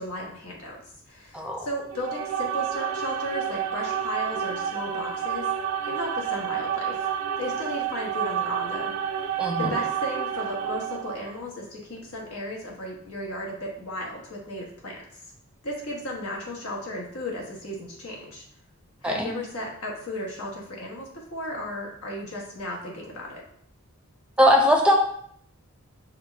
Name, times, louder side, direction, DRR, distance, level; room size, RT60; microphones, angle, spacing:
voice 1, 0.0-7.1 7.4-15.2 15.6-18.5 19.0-23.4, left 1 dB, 75° left, -2 dB, 1.2 m, -35 dB
sound 1, 1.9-11.4, right 8 dB, 80° right, 0.5 m, -29 dB
voice 2, 9.4-9.7 19.0-19.3 24.4-24.9, equal, 5° right, 0 dB, 0.6 m, -20 dB
6.3 x 2.2 x 3.5 m, 0.66 s
head